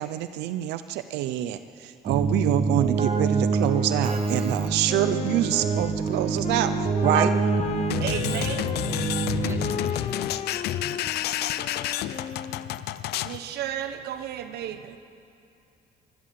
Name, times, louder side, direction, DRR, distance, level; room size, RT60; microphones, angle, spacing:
voice 1, 0.0-6.7 7.0-7.3, right 12 dB, 90° right, 11 dB, 0.7 m, -26 dB
Keyboard (musical), 2.1-9.9, right 4 dB, 35° right, 1.9 m, -26 dB
Wind instrument woodwind instrument, 4.8-12.8, left 7 dB, 40° left, 0.8 m, -35 dB
voice 2, 7.8-8.8 13.2-15.0, right 10 dB, 75° right, 9 dB, 1.2 m, -33 dB
sound 1, 7.9-13.4, left 13 dB, 75° left, 0.7 m, -30 dB
voice 3, 9.3-10.3, right 2 dB, 15° right, 6 dB, 1.8 m, -48 dB
23.5 x 17.5 x 7.7 m, 2.6 s
cardioid pair, 110°, 17 cm